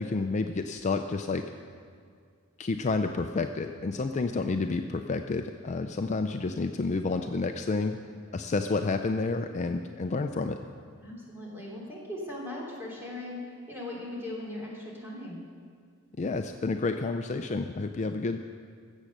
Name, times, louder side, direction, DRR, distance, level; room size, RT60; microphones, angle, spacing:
voice 1, 0.0-1.5 2.6-8.0 8.3-10.6 16.2-18.4, left 3 dB, 35° left, 6 dB, 0.4 m, -30 dB
voice 2, 11.0-15.4, left 1 dB, 10° right, -4 dB, 3.1 m, -39 dB
15.0 x 7.3 x 6.5 m, 2.1 s
head